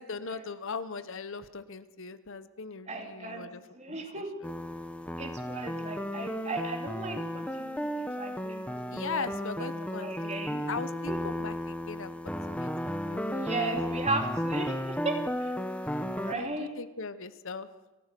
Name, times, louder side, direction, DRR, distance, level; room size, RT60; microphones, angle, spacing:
voice 1, 0.0-3.6 3.9-4.2 8.9-10.4 10.7-13.2 16.3-17.7, left 5 dB, 60° left, 13 dB, 0.9 m, -39 dB
voice 2, 2.9-4.3 5.2-9.3 9.6-10.6 11.1-11.2 13.3-15.5 16.1-16.7, right 2 dB, 30° right, 3 dB, 2.9 m, -36 dB
sound 1, 4.4-16.3, equal, 5° left, 1.0 m, -34 dB
29.0 x 13.5 x 6.8 m, 1.1 s
head